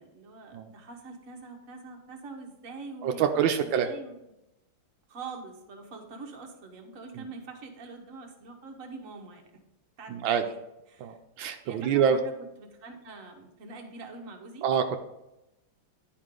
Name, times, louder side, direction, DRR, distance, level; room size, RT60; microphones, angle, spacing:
voice 1, 0.0-4.2 5.1-9.6 10.0-11.2 11.6-12.3 12.6-14.7, right 3 dB, 50° right, 2 dB, 1.4 m, -44 dB
voice 2, 3.0-3.9 7.2-7.3 10.1-10.4 11.0-12.2 14.6-15.0, right 8 dB, 85° right, 6 dB, 1.4 m, -26 dB
10.5 x 4.8 x 3.7 m, 0.92 s
omnidirectional pair, 2.1 m